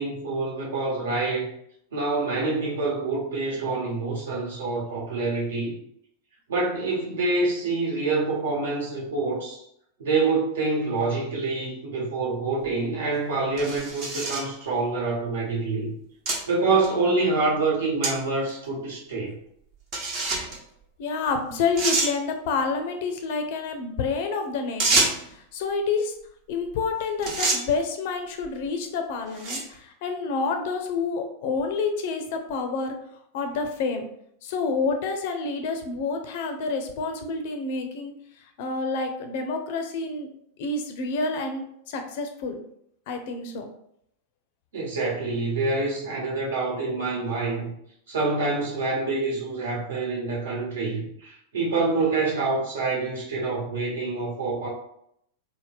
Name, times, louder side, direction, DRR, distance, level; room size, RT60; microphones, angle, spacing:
voice 1, 0.0-1.5 1.9-5.7 6.5-9.6 10.0-15.9 16.5-19.3 44.7-47.7 48.1-54.7, right 3 dB, 65° right, -4 dB, 1.2 m, -26 dB
sound 1, 12.6-12.7 13.6-14.5 15.3-15.4 16.3-16.4 16.8-16.9 18.0-18.1 18.5-18.6 19.9-20.6 21.3-21.4 21.8-22.1 24.8-25.3 26.7-26.9 27.2-27.6 28.4-28.7 29.3-29.7, right 3 dB, 40° right, 0.9 m, -26 dB
voice 2, 21.0-26.1 26.5-33.0 33.3-34.1 34.4-38.1 38.6-40.3 40.6-42.6 43.1-43.7, left 4 dB, 50° left, 6 dB, 0.4 m, -28 dB
3.4 x 2.1 x 3.2 m, 0.72 s
figure-of-eight pair, 90°, 0 cm